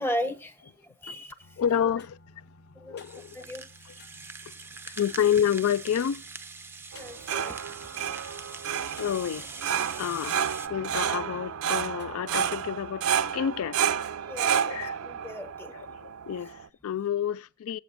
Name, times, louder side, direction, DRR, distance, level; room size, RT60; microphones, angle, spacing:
voice 1, 0.0-1.6 2.7-3.0 3.3-4.0 7.0-7.6 14.3-14.6 15.0-15.7, equal, 10° left, 0.9 m, -36 dB
sound 1, 1.4-12.9, left 3 dB, 50° left, 0.8 m, -56 dB
voice 2, 1.6-2.2 2.9-3.4 4.9-6.2 9.0-9.5 10.0-10.4 10.7-13.8 14.6-15.0 16.0-17.8, left 9 dB, 70° left, 0.3 m, -29 dB
Rattle (instrument), 3.0-10.7, right 4 dB, 10° right, 0.5 m, -43 dB
sound 2, 6.9-16.7, right 8 dB, 70° right, 0.5 m, -30 dB
14.5 x 7.9 x 2.5 m
head